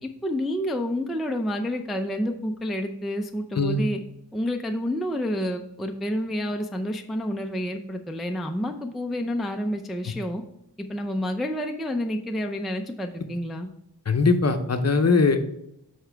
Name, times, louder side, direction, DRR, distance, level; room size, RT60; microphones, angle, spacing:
voice 1, 0.0-4.0 4.3-10.4 10.8-13.7, equal, ahead, 3 dB, 0.4 m, -29 dB
voice 2, 14.1-15.4, left 3 dB, 40° left, 7 dB, 0.7 m, -20 dB
6.9 x 4.5 x 4.5 m, 0.81 s
wide cardioid pair, 110°, 41 cm